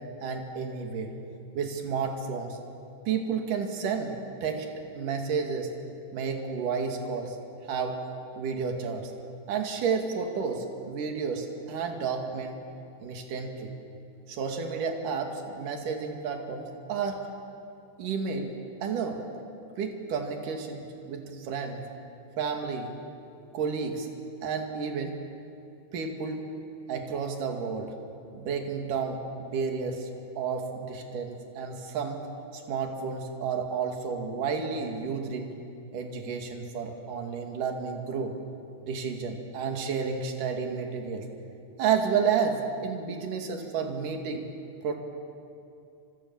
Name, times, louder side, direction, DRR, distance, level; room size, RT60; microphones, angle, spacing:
voice 1, 0.2-1.1 1.6-2.6 3.1-4.7 4.9-5.7 6.1-7.4 7.7-8.0 8.3-9.1 9.5-12.6 13.0-13.7 14.3-17.2 18.0-18.5 18.8-19.2 19.8-21.9 22.4-22.9 23.5-24.1 24.4-25.2 25.9-26.4 26.9-28.0 28.3-30.1 30.4-32.3 32.5-35.5 35.9-38.3 38.8-41.3 41.8-44.5 44.8-45.0, right 6 dB, 60° right, 3 dB, 3.7 m, -31 dB
29.5 x 26.5 x 7.2 m, 2.6 s
omnidirectional pair, 4.4 m